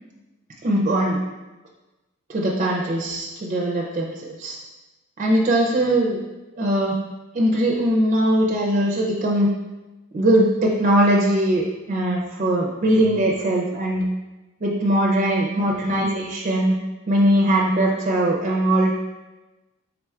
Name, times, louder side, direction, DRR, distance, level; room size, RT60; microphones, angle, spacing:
voice 1, 0.6-1.2 2.3-4.6 5.2-6.2 6.6-7.0 7.3-9.5 10.1-14.1 14.6-16.8 17.1-19.0, right 1 dB, 35° right, -1 dB, 0.4 m, -20 dB
3.8 x 2.3 x 4.3 m, 1.1 s
head